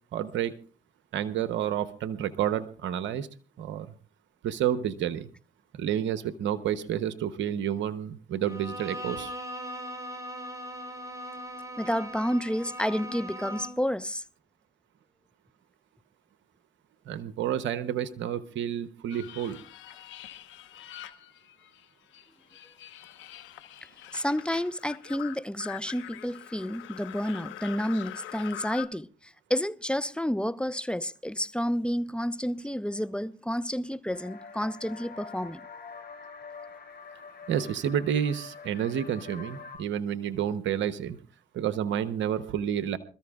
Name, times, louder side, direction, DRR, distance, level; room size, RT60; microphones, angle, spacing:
voice 1, 0.1-0.5 1.1-3.3 3.6-3.9 4.4-5.3 5.7-9.3 17.1-19.6 37.5-41.2 41.5-43.0, right 9 dB, 80° right, 0.9 m, -30 dB
Bowed string instrument, 8.4-13.9, equal, 15° right, 4.6 m, -39 dB
voice 2, 11.8-14.2 24.1-35.6, equal, 5° left, 0.7 m, -30 dB
sound 1, 19.1-21.9 22.1-28.9, left 13 dB, 85° left, 1.1 m, -44 dB
sound 2, 34.1-39.8, left 5 dB, 55° left, 6.9 m, -45 dB
26.5 x 13.5 x 2.4 m
supercardioid pair, 50°, 19 cm